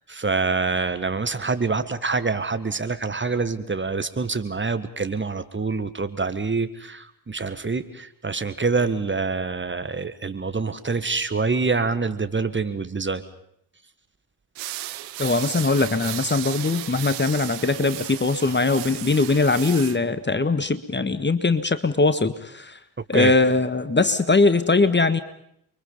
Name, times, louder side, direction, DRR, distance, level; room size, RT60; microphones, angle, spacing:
voice 1, 0.0-13.2 23.1-23.3, right 4 dB, 25° right, 10 dB, 1.8 m, -26 dB
sound 1, 14.5-20.0, right 15 dB, 75° right, 1.1 m, -34 dB
voice 2, 15.2-22.8 23.1-25.2, left 3 dB, 20° left, 12 dB, 1.5 m, -21 dB
29.5 x 23.5 x 5.5 m, 0.72 s
figure-of-eight pair, 40°, 49 cm